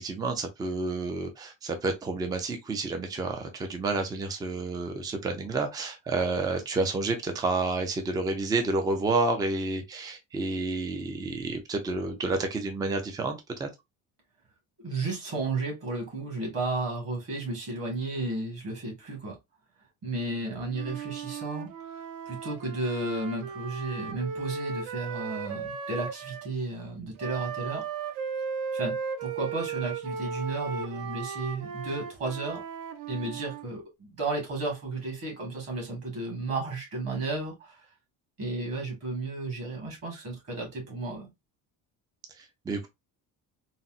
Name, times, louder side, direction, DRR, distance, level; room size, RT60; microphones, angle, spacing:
voice 1, 0.0-13.7 42.4-42.9, right 3 dB, 10° right, 0.3 m, -30 dB
voice 2, 14.8-19.4 20.0-21.7 22.3-27.8 28.7-32.6 33.1-37.9 38.4-41.3, right 2 dB, 40° right, 1.5 m, -33 dB
Wind instrument woodwind instrument, 20.7-26.5 27.2-33.7, right 6 dB, 65° right, 0.6 m, -36 dB
4.0 x 2.0 x 2.3 m
cardioid pair, 165°, 38 cm